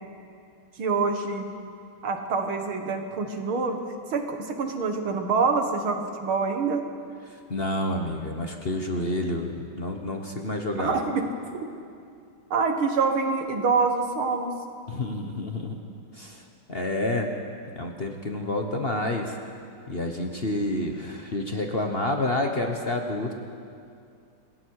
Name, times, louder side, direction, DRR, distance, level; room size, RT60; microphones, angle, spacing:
voice 1, 0.8-1.5 2.0-3.8 4.1-6.8 10.8-11.3 12.5-14.5, right 4 dB, 85° right, 5 dB, 2.5 m, -26 dB
voice 2, 7.5-9.5 9.8-11.0 14.9-15.8 16.1-16.4 16.7-17.3 17.8-19.4 19.9-23.3, left 1 dB, 35° left, 3 dB, 1.2 m, -29 dB
27.5 x 21.0 x 4.8 m, 2.4 s
omnidirectional pair, 2.2 m